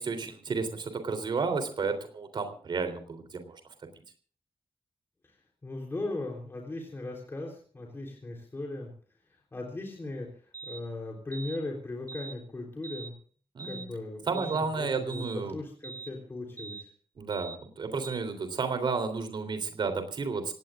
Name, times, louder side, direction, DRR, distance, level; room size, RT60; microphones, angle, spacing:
voice 1, 0.0-3.6 13.6-13.8 14.3-15.6 17.2-20.5, right 4 dB, 55° right, 8 dB, 3.5 m, -32 dB
voice 2, 5.6-8.9 9.5-10.3 10.6-13.1 13.6-16.9, left 2 dB, 25° left, 0 dB, 3.6 m, -38 dB
sound 1, 10.5-10.8 11.3-11.6 12.1-12.4 12.8-13.1 13.6-13.9 14.3-14.6 15.1-15.4 15.8-16.1 16.6-16.9 17.3-17.6 18.0-18.2, right 5 dB, 40° right, 4.4 m, -43 dB
27.0 x 18.0 x 2.5 m, 0.43 s
wide cardioid pair, 170°, 9 cm